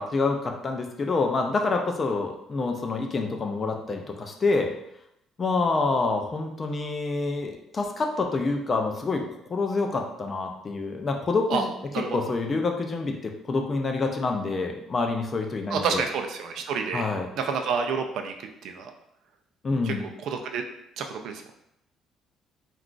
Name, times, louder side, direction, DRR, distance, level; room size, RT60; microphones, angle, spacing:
voice 1, 0.0-4.7 5.4-9.2 9.5-11.7 12.1-16.0 16.9-17.3 19.6-20.1, left 3 dB, 25° left, 3 dB, 0.3 m, -27 dB
voice 2, 15.7-17.0 17.4-18.3 18.6-18.9 19.8-20.6 21.0-21.4, right 5 dB, 60° right, 5 dB, 0.3 m, -29 dB
2.3 x 2.3 x 3.7 m, 0.79 s
cardioid pair, 170°, 0 cm